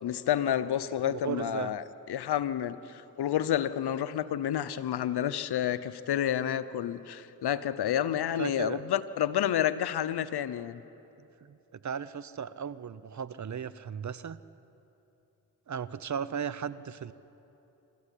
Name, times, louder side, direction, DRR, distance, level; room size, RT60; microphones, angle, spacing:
voice 1, 0.0-1.8 2.1-10.8, left 10 dB, 80° left, 14 dB, 0.8 m, -29 dB
voice 2, 1.0-1.7 8.4-8.8 11.4-11.6 11.8-14.4 15.7-17.1, right 7 dB, 50° right, 16 dB, 0.8 m, -36 dB
25.0 x 13.5 x 9.9 m, 3.0 s
cardioid pair, 60°, 38 cm